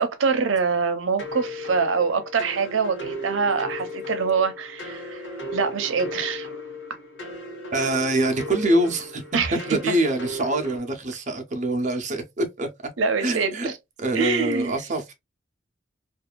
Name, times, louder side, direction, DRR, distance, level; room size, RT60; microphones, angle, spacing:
voice 1, 0.0-5.3 5.5-6.5 9.3-9.9 13.0-13.7 14.1-14.8, right 5 dB, 85° right, 0.6 m, -24 dB
sound 1, 1.2-10.8, left 1 dB, 65° left, 1.0 m, -35 dB
voice 2, 7.7-9.2 9.5-12.7 13.2-13.7 14.0-15.1, right 1 dB, 40° right, 0.6 m, -25 dB
2.6 x 2.4 x 2.2 m
head